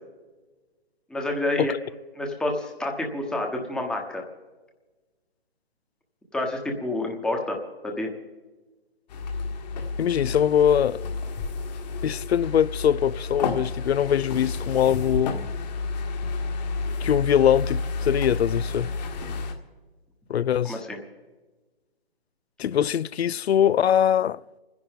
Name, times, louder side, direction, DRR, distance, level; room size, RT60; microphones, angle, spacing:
voice 1, 1.1-1.7 2.1-4.2 6.3-8.1 20.6-21.0, left 1 dB, 5° left, 1.1 m, -28 dB
sound 1, 9.1-19.5, left 3 dB, 40° left, 1.8 m, -30 dB
voice 2, 10.0-11.0 12.0-15.4 17.0-18.9 20.3-20.8 22.6-24.4, left 9 dB, 80° left, 0.5 m, -22 dB
30.0 x 10.5 x 3.7 m
hypercardioid pair, 145°, 31 cm